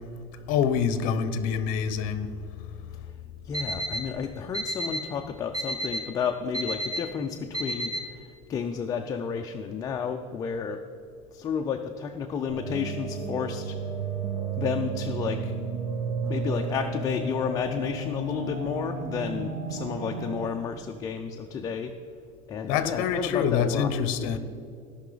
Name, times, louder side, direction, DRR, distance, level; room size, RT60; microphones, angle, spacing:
voice 1, 0.5-2.3 22.7-24.4, left 7 dB, 55° left, 0.7 m, -26 dB
voice 2, 3.4-10.8 11.3-13.8 14.6-15.5 16.3-21.9 22.5-23.9 24.2-24.4, left 6 dB, 20° left, 0.4 m, -31 dB
Alarm, 3.5-4.0 4.5-5.0 5.5-6.0 6.5-7.0 7.5-8.0, right 1 dB, 25° right, 1.6 m, -30 dB
sound 1, 12.5-20.5, right 4 dB, 90° right, 1.5 m, -32 dB
16.5 x 5.6 x 3.9 m
cardioid pair, 155°, 17 cm